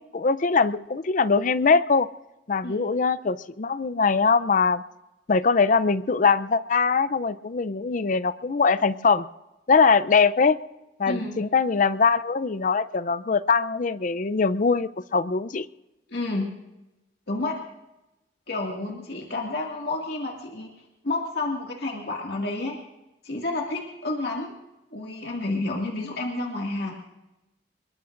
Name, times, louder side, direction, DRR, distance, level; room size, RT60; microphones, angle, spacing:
voice 1, 0.0-2.1 2.5-4.8 5.3-9.3 9.7-10.6 11.0-15.7, left 4 dB, 45° left, 16 dB, 0.5 m, -22 dB
voice 2, 11.1-11.4 16.1-16.5 17.3-17.6 18.5-20.7 21.0-22.8 23.2-24.5 24.9-26.9, left 2 dB, 65° left, 0 dB, 2.1 m, -30 dB
25.5 x 22.0 x 2.6 m, 0.97 s
head